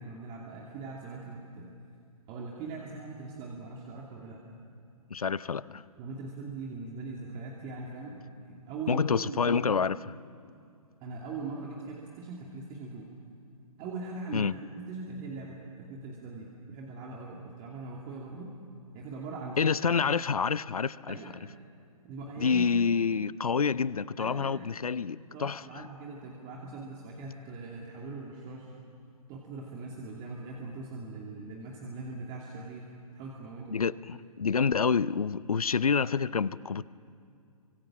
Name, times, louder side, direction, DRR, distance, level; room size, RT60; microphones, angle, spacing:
voice 1, 0.0-1.7 2.3-4.4 6.0-8.2 8.5-9.8 11.0-13.1 13.8-18.5 18.9-19.6 21.1-21.4 22.0-22.7 24.2-24.7 25.3-28.7 29.3-33.8, right 3 dB, 25° right, 2.6 m, -41 dB
voice 2, 5.1-5.8 8.9-10.1 14.3-14.5 19.6-21.2 22.4-25.9 33.7-36.8, left 5 dB, 75° left, 0.6 m, -28 dB
29.0 x 25.0 x 7.4 m
figure-of-eight pair, 125°, 19 cm